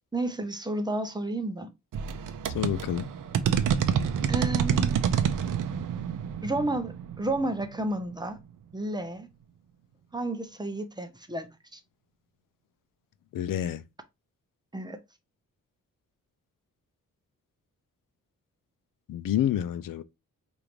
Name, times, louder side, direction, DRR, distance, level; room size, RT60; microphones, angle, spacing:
voice 1, 0.0-1.7 4.3-5.0 6.4-8.4 8.7-9.3 10.1-11.8 14.7-15.0, right 2 dB, 15° right, 0.6 m, -31 dB
sound 1, 1.9-8.4, right 8 dB, 75° right, 0.6 m, -28 dB
voice 2, 2.5-3.1 13.3-13.8 19.1-20.0, left 11 dB, 85° left, 0.5 m, -28 dB
5.0 x 2.6 x 2.9 m
wide cardioid pair, 125°, 32 cm